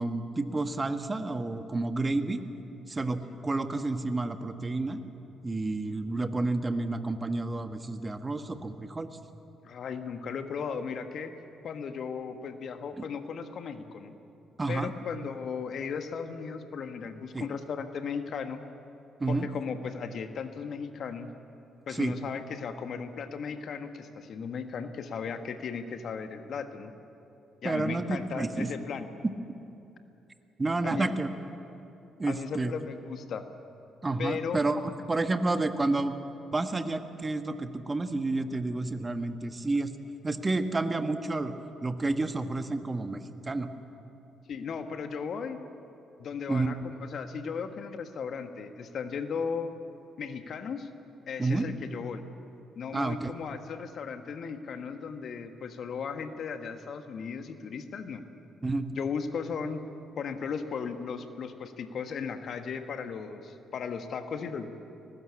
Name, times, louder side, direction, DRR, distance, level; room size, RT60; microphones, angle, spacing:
voice 1, 0.0-2.4 2.9-5.0 5.4-9.1 13.0-13.1 14.6-14.9 17.3-17.5 19.2-19.5 21.9-22.1 27.6-28.7 30.6-31.3 32.2-32.7 34.0-36.1 36.5-39.9 40.2-43.7 46.5-46.8 51.4-51.7 52.9-53.3 58.6-58.9, right 2 dB, 25° right, 8 dB, 1.6 m, -30 dB
voice 2, 9.6-11.3 11.6-14.2 14.7-18.6 19.3-21.3 21.9-26.9 27.6-29.1 30.8-31.1 32.3-33.5 34.2-34.6 44.5-45.6 46.2-49.8 50.2-50.9 51.3-52.2 52.7-58.2 58.9-59.8 60.2-64.7, left 6 dB, 55° left, 8 dB, 1.6 m, -36 dB
23.0 x 19.0 x 8.6 m, 2.8 s
hypercardioid pair, 45°, 0 cm